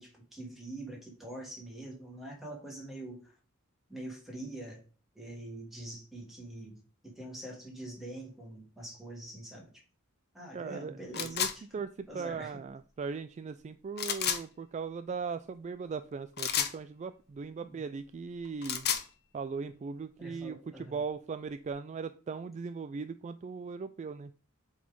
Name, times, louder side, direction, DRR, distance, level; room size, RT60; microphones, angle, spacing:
voice 1, 0.0-3.3 3.9-4.8 5.1-6.8 7.0-9.8 10.3-11.6 12.1-12.6 17.6-17.8 20.2-21.0, right 1 dB, ahead, -2 dB, 2.6 m, -44 dB
voice 2, 10.5-18.9 19.3-24.3, right 5 dB, 35° right, 12 dB, 0.3 m, -39 dB
sound 1, 11.1-11.5 14.0-14.4 16.4-16.7 18.4-19.1, left 9 dB, 50° left, 0.9 m, -30 dB
7.6 x 4.1 x 5.2 m, 0.38 s
head